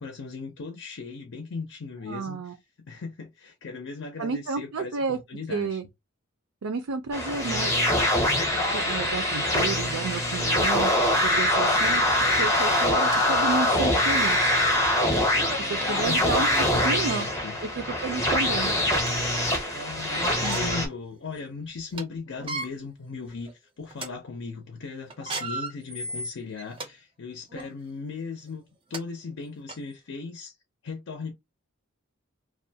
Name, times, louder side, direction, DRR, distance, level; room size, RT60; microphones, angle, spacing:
voice 1, 0.0-5.8 15.5-17.6 19.7-28.6 28.9-30.5 30.8-31.3, left 4 dB, 65° left, 0.5 m, -38 dB
voice 2, 2.1-2.5 4.2-5.2 5.5-5.8 6.6-7.7 8.7-12.0 12.4-14.5 15.7-17.2 17.7-18.7, right 4 dB, 80° right, 0.4 m, -31 dB
sound 1, 7.1-20.9, left 1 dB, 15° left, 0.6 m, -24 dB
sound 2, 12.1-12.2 12.8-13.3 13.8-13.9 14.2-14.5 15.8-15.9 16.8-17.3 18.0-18.1 18.6-19.3 20.2-20.9 21.3-21.4 21.8-22.0 22.4-22.7 23.3-23.5 23.9-24.1 25.1-26.9 27.5-27.7 28.5-28.6 28.9-29.0 29.7-29.8, right 2 dB, 25° right, 0.5 m, -36 dB
2.4 x 2.1 x 2.7 m
head